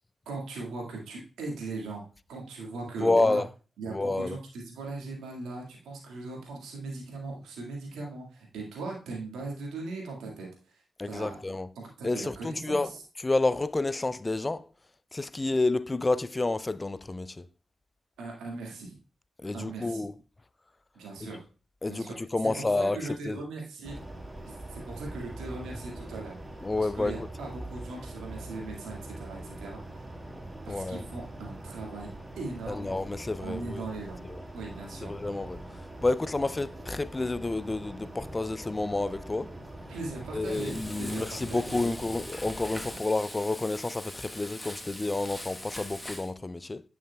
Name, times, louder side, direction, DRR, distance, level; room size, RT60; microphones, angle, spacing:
voice 1, 0.3-2.0 2.3-3.4 3.8-10.8 11.1-11.4 11.8-12.9 18.2-19.0 19.5-20.0 20.9-21.4 21.9-22.1 22.6-24.0 24.5-26.4 26.8-30.1 30.6-32.1 32.4-32.9 33.4-34.2 34.5-35.1 39.9-41.8, right 3 dB, 85° right, 1.9 m, -39 dB
voice 2, 3.0-3.5 3.9-4.4 11.0-11.7 12.0-12.9 13.2-14.7 15.1-17.5 19.4-20.1 21.2-21.3 21.8-23.4 26.6-27.1 30.3-30.4 30.7-31.0 32.7-33.8 34.2-34.4 35.0-35.6 36.0-39.5 40.3-46.8, left 2 dB, 30° left, 0.4 m, -29 dB
sound 1, 23.8-43.0, right 1 dB, 20° right, 1.8 m, -43 dB
Frying (food), 40.4-46.3, left 1 dB, 15° left, 1.2 m, -42 dB
9.3 x 5.9 x 2.3 m
supercardioid pair, 40°, 0 cm